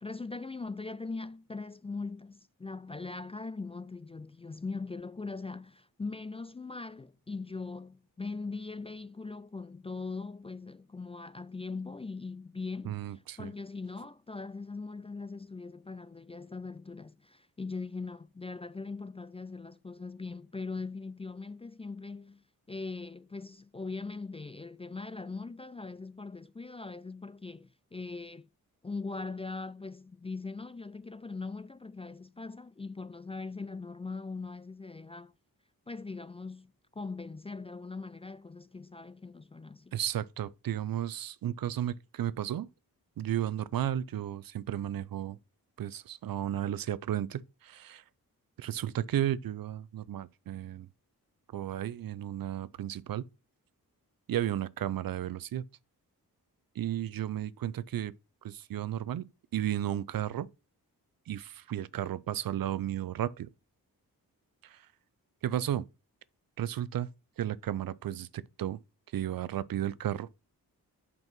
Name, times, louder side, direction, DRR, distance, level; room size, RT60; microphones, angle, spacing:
voice 1, 0.0-28.5 28.8-35.3 35.9-40.0, left 3 dB, 15° left, 0.3 m, -41 dB
voice 2, 12.8-13.5 39.9-42.7 43.2-45.4 45.8-48.0 48.6-50.9 51.5-53.3 54.3-55.6 56.8-58.1 58.4-59.3 59.5-60.5 61.3-63.5 64.6-64.9 65.4-65.8 66.6-67.1 67.4-68.8 69.1-70.3, right 11 dB, 70° right, 0.5 m, -33 dB
5.5 x 5.4 x 6.0 m
cardioid pair, 70°, 36 cm